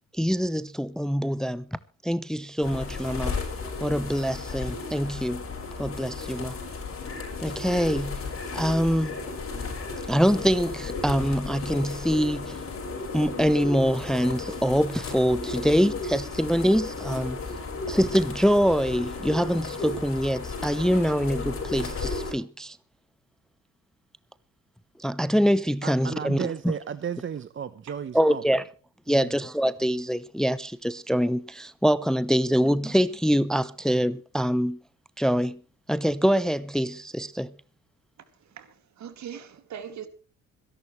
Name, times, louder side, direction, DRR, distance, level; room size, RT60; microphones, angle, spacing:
voice 1, 0.1-1.7 2.0-3.4 3.8-5.4 5.8-6.6 7.4-8.3 8.5-9.2 10.1-12.6 13.1-17.4 17.9-22.8 25.0-26.7 28.1-28.6 29.1-34.8 35.2-35.6 35.9-37.5, equal, ahead, 0.6 m, -24 dB
sound 1, 2.6-22.3, left 3 dB, 45° left, 6.2 m, -34 dB
voice 2, 25.8-28.4 29.1-29.4, right 8 dB, 40° right, 0.9 m, -34 dB
voice 3, 38.5-40.1, right 8 dB, 65° right, 2.4 m, -40 dB
26.0 x 11.5 x 3.2 m
cardioid pair, 90°, 30 cm